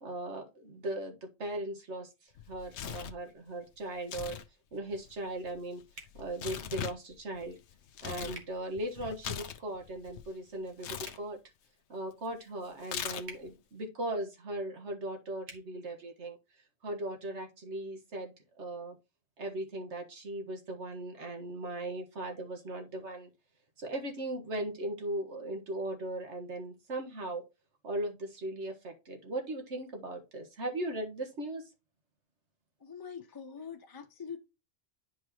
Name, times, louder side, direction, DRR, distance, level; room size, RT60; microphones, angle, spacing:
voice 1, 0.0-4.4 4.7-5.8 6.1-7.6 8.0-11.4 11.9-16.4 16.8-19.0 19.4-23.3 23.8-27.4 27.8-31.7, right 1 dB, 85° right, 1.8 m, -38 dB
Tearing, 2.4-3.2 4.0-4.5 4.7-8.4 8.8-10.3 10.8-11.2 12.8-13.5, left 9 dB, 85° left, 0.9 m, -40 dB
sound 1, 5.9-6.2 8.3-8.5 11.0-11.2 13.2-13.4 15.4-15.6, right 3 dB, 70° right, 1.9 m, -47 dB
voice 2, 32.8-34.4, left 6 dB, 20° left, 0.9 m, -44 dB
10.5 x 4.8 x 2.9 m
omnidirectional pair, 1.1 m